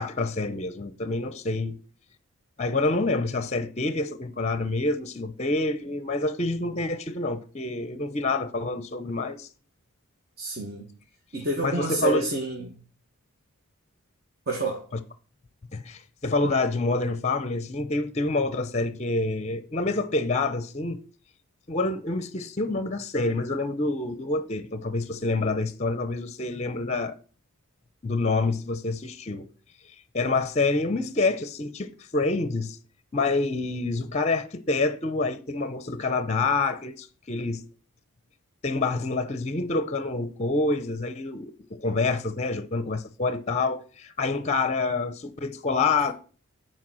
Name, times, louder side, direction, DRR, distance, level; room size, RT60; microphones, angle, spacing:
voice 1, 0.0-1.8 2.6-9.5 11.6-12.3 15.7-21.0 21.7-27.2 28.0-29.5 30.1-32.8 33.1-37.6 38.6-46.1, left 3 dB, 30° left, 0.6 m, -27 dB
voice 2, 10.4-10.9 11.3-12.8 14.5-14.8, right 3 dB, 45° right, 1.2 m, -29 dB
8.7 x 4.5 x 6.1 m
head